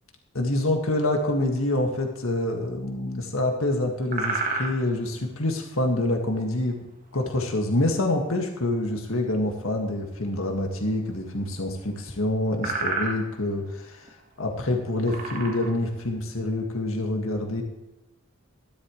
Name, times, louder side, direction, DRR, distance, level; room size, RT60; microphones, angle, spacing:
voice 1, 0.3-6.8 7.1-17.6, left 1 dB, 75° left, 2 dB, 1.9 m, -26 dB
sound 1, 4.0-5.0 8.0-8.1 11.5-11.6 12.1-12.2 12.5-13.4 14.1-14.2 14.8-15.8, right 3 dB, 40° right, 1.5 m, -30 dB
14.0 x 12.0 x 3.2 m, 0.99 s
head